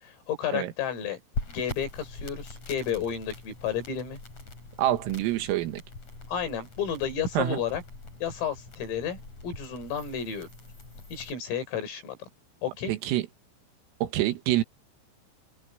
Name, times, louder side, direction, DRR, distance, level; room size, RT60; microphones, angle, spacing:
voice 1, 0.0-1.2 1.5-4.2 6.3-7.8 8.2-10.5 11.1-12.3 12.6-12.9, left 8 dB, 85° left, 8.3 m, -32 dB
sound 1, 1.3-11.3, left 3 dB, 30° left, 7.3 m, -42 dB
voice 2, 4.8-5.8 7.4-7.6 12.9-13.3 14.0-14.6, right 13 dB, 85° right, 4.3 m, -26 dB
omnidirectional pair, 5.8 m